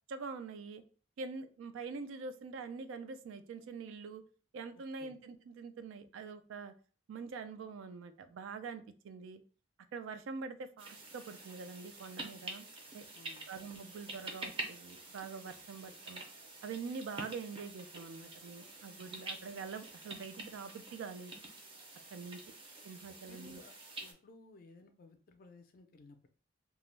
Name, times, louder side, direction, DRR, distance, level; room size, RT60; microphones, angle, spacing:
voice 1, 0.1-0.8 1.2-4.2 4.5-6.7 7.1-9.4 9.9-12.7 12.9-13.1 13.5-16.2 16.6-21.3 22.1-22.4 22.8-23.6, right 4 dB, 85° right, 10 dB, 0.3 m, -45 dB
voice 2, 4.7-5.2 13.1-13.5 22.2-22.3 23.3-23.7 24.0-26.3, left 3 dB, 45° left, 6 dB, 0.4 m, -57 dB
sound 1, 10.8-24.1, right 2 dB, 25° right, 0.5 m, -47 dB
2.2 x 2.0 x 3.1 m, 0.40 s
head